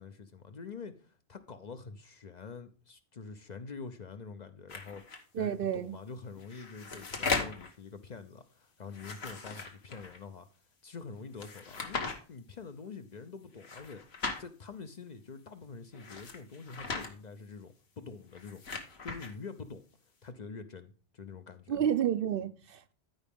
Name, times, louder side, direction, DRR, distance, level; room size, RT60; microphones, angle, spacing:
voice 1, 0.0-10.5 10.8-14.0 14.4-19.8 20.2-21.8, left 5 dB, 50° left, 0.7 m, -46 dB
sound 1, 4.7-5.2 6.3-7.7 8.9-10.2 11.4-12.2 13.6-14.4 15.9-17.1 18.2-19.3, left 4 dB, 70° left, 1.5 m, -38 dB
voice 2, 5.3-6.0 21.7-22.9, right 9 dB, 65° right, 0.7 m, -30 dB
13.0 x 5.0 x 3.6 m
omnidirectional pair, 1.1 m